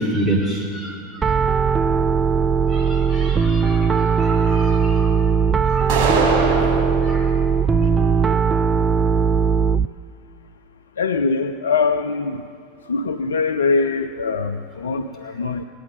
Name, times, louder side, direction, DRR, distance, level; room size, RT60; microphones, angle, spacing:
voice 1, 0.0-1.4 2.7-5.1 5.6-6.5 7.0-7.3, right 1 dB, 5° right, -3 dB, 2.7 m, -28 dB
Piano, 1.2-9.9, right 6 dB, 20° right, 0.4 m, -18 dB
sound 1, 5.9-6.9, right 3 dB, 45° right, 4.0 m, -20 dB
voice 2, 11.0-12.4 12.9-15.6, left 4 dB, 75° left, 8 dB, 0.5 m, -22 dB
21.0 x 9.1 x 6.4 m, 2.2 s
figure-of-eight pair, 85°, 0 cm